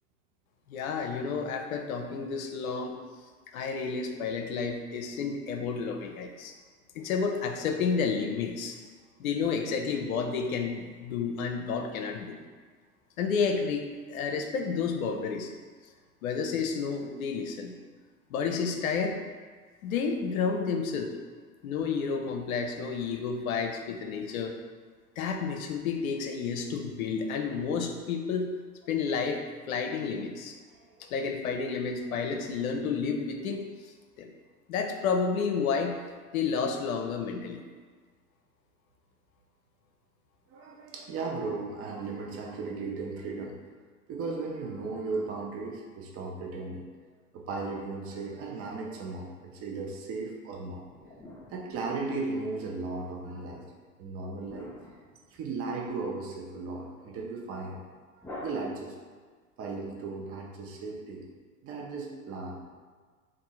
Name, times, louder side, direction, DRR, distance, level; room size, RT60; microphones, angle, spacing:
voice 1, 0.7-3.0 3.5-6.5 6.9-8.8 9.2-12.4 13.2-15.5 16.2-17.8 18.3-19.2 19.8-21.1 21.6-24.6 25.2-28.5 28.9-30.5 31.0-33.7 34.2-34.3 34.7-36.0 36.3-37.6, left 5 dB, 65° left, 4 dB, 0.6 m, -30 dB
voice 2, 40.5-43.5 44.1-46.9 47.3-50.8 51.5-53.7 54.0-54.7 55.3-57.9 58.4-58.9 59.6-61.2 61.6-62.6, right 3 dB, 30° right, -1 dB, 0.7 m, -36 dB
sound 1, 50.5-52.6 54.5-55.9 58.2-59.2, left 1 dB, 5° left, 0.6 m, -47 dB
3.5 x 2.6 x 4.1 m, 1.5 s
figure-of-eight pair, 80°, 45 cm